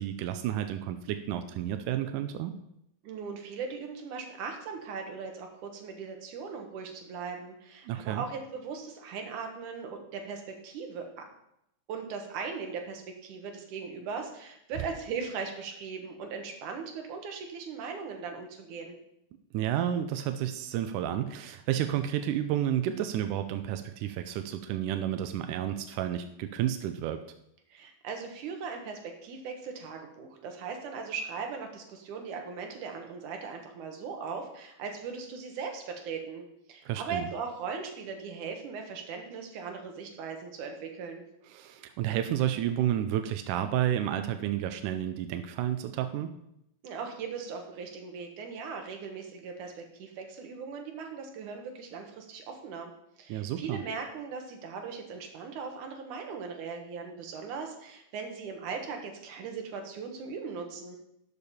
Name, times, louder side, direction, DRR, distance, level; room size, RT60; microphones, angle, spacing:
voice 1, 0.0-2.5 7.9-8.3 19.5-27.2 36.8-37.3 41.5-46.3 53.3-53.8, right 11 dB, 85° right, 8 dB, 1.9 m, -31 dB
voice 2, 3.0-11.2 11.9-19.0 27.7-36.4 36.7-41.2 46.8-52.9 53.2-61.0, right 5 dB, 65° right, 3 dB, 2.6 m, -39 dB
12.0 x 6.9 x 4.3 m, 0.79 s
omnidirectional pair, 4.2 m